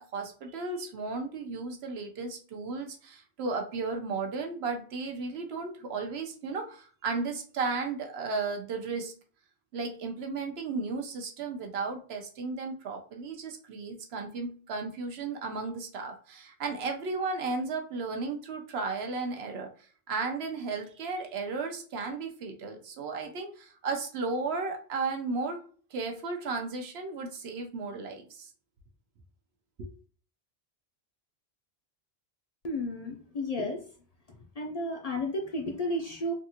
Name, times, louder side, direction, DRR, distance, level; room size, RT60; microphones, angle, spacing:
voice 1, 0.0-9.1 9.7-19.7 20.1-25.6 25.9-28.5 29.8-29.9, right 4 dB, 75° right, 4 dB, 0.9 m, -34 dB
voice 2, 32.6-33.8 34.3-36.3, left 1 dB, 50° left, 1 dB, 0.5 m, -33 dB
3.5 x 2.4 x 2.7 m, 0.42 s
omnidirectional pair, 1.1 m